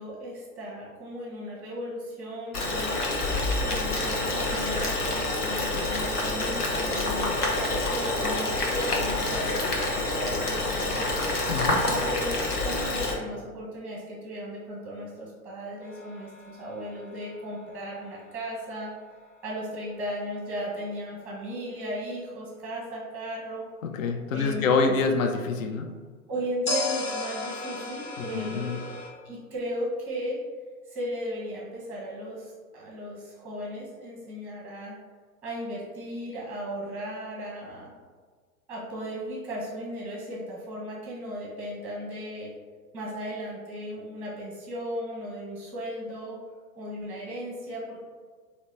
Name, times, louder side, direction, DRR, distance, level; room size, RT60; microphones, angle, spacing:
voice 1, 0.0-11.2 11.8-18.9 19.4-23.6 24.3-25.0 26.3-30.4 30.9-34.9 35.4-37.9 38.7-42.5 42.9-46.4 46.8-48.0, equal, 5° right, -4 dB, 0.7 m, -36 dB
Boiling, 2.5-13.1, left 2 dB, 90° left, 0.8 m, -27 dB
voice 2, 11.5-11.8 23.8-25.9 28.2-28.8, left 4 dB, 60° left, 4 dB, 0.6 m, -26 dB
sound 1, 15.8-18.9 26.7-29.1, left 3 dB, 25° left, 0.9 m, -35 dB
3.8 x 2.1 x 3.1 m, 1.5 s
figure-of-eight pair, 105°, 45 cm